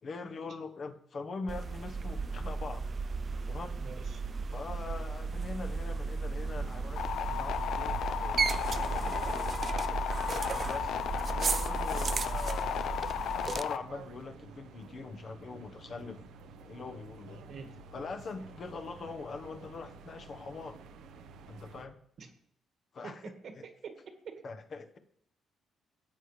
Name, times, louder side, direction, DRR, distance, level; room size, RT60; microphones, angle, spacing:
voice 1, 0.0-2.8 3.5-3.8 4.5-8.5 8.8-9.4 10.5-11.0 11.2-16.2 16.6-17.4 17.9-20.8 21.5-22.0 22.9-23.2 24.4-25.0, left 4 dB, 50° left, 7 dB, 1.1 m, -43 dB
sound 1, 1.5-13.6, right 4 dB, 40° right, 0.4 m, -34 dB
voice 2, 3.8-4.2 9.5-10.0 11.9-12.3 17.5-17.8 22.2-22.3 23.0-24.4, right 5 dB, 60° right, 6 dB, 1.6 m, -47 dB
sound 2, 6.6-21.9, right 5 dB, 80° right, 0.8 m, -51 dB
sound 3, 7.0-13.8, left 9 dB, 75° left, 0.6 m, -34 dB
13.0 x 8.0 x 3.2 m, 0.72 s
cardioid pair, 90°, 0 cm